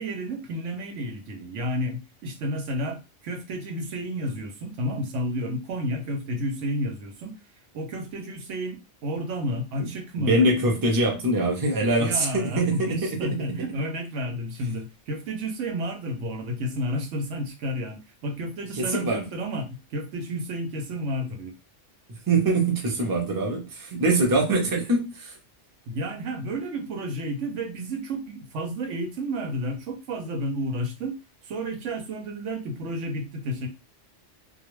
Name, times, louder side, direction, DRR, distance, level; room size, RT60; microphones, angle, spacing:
voice 1, 0.0-7.3 7.7-10.5 12.0-21.5 25.9-31.1 31.4-33.7, equal, 90° right, 1.1 m, -31 dB
voice 2, 10.2-13.1 18.7-19.3 22.3-25.4, right 2 dB, 25° right, 0.5 m, -23 dB
2.4 x 2.2 x 3.1 m
omnidirectional pair, 1.2 m